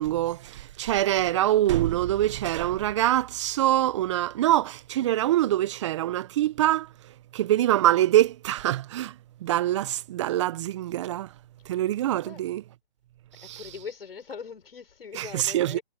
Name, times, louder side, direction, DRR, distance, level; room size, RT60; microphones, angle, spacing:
voice 1, 0.0-6.9 7.3-9.1 9.4-11.3 11.7-12.6 13.4-13.6 15.1-15.8, right 13 dB, 30° right, 1.1 m, -24 dB
voice 2, 13.3-15.8, left 6 dB, 65° left, 5.4 m, -41 dB
hypercardioid pair, 150°, 31 cm